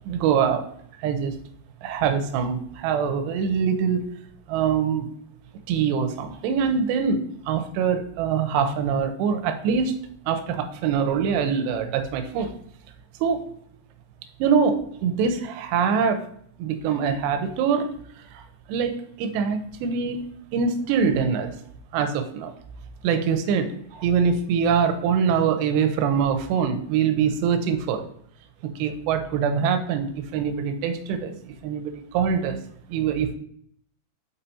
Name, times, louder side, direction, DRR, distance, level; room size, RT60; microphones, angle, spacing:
voice 1, 0.1-0.7 1.0-1.3 1.8-4.1 4.5-5.1 5.7-10.0 10.3-12.5 13.2-13.4 14.4-16.2 16.6-17.9 18.3-18.4 18.7-20.2 20.5-21.5 21.9-22.5 23.0-28.1 28.8-32.6 32.9-33.4, right 6 dB, 85° right, 8 dB, 2.8 m, -24 dB
5.7 x 5.6 x 4.1 m, 0.66 s
omnidirectional pair, 4.8 m